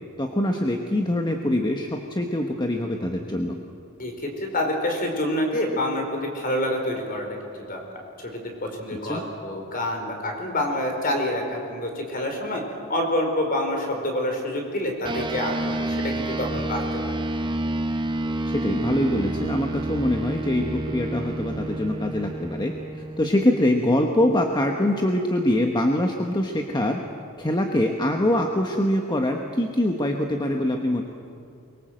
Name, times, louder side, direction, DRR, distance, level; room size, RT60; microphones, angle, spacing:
voice 1, 0.2-3.6 9.0-9.2 18.5-27.0 27.4-31.0, left 1 dB, 20° left, 3 dB, 1.3 m, -24 dB
voice 2, 4.0-7.8 8.2-12.6 12.9-17.2, left 1 dB, 40° left, 2 dB, 4.7 m, -27 dB
sound 1, 15.1-24.8, right 1 dB, 20° right, 1.1 m, -30 dB
24.0 x 23.0 x 7.7 m, 2.5 s
head